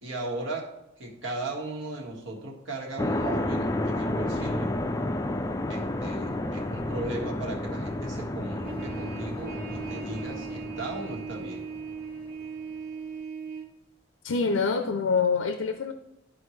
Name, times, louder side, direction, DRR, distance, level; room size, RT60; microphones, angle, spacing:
voice 1, 0.0-4.8 5.7-11.6, right 2 dB, 70° right, -1 dB, 1.6 m, -37 dB
sound 1, 3.0-12.0, left 1 dB, 15° left, 0.3 m, -31 dB
Trumpet, 8.6-13.7, right 5 dB, 50° right, 1.4 m, -38 dB
voice 2, 14.2-15.9, left 5 dB, 85° left, 7 dB, 0.6 m, -25 dB
12.5 x 4.4 x 3.2 m, 0.90 s
head